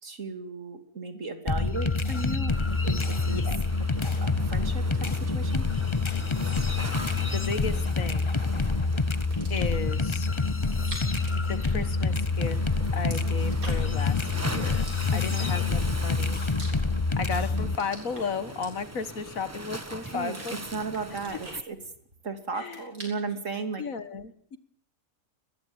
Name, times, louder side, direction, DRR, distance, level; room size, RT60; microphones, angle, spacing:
voice 1, 0.0-3.4 4.0-5.6 15.1-15.5 20.1-20.4 20.7-21.8 22.2-23.8, right 3 dB, 60° right, 8 dB, 3.0 m, -35 dB
sound 1, 1.5-17.8, left 4 dB, 25° left, 0.8 m, -27 dB
Waves surf, 2.5-21.6, right 1 dB, 10° right, 1.2 m, -41 dB
voice 2, 3.3-3.6 7.3-8.3 9.5-10.3 11.4-12.6 12.9-14.2 14.4-16.4 17.2-20.5 22.5-22.8 23.8-24.6, left 5 dB, 70° left, 14 dB, 1.9 m, -34 dB
sound 2, 9.3-9.8 10.7-12.4 12.6-14.0 14.7-15.5 16.1-17.2 17.5-19.2 19.7-20.5 20.9-22.2 22.5-23.4, right 1 dB, 75° right, 8.3 m, -45 dB
22.5 x 19.5 x 8.8 m, 0.64 s
omnidirectional pair, 1.5 m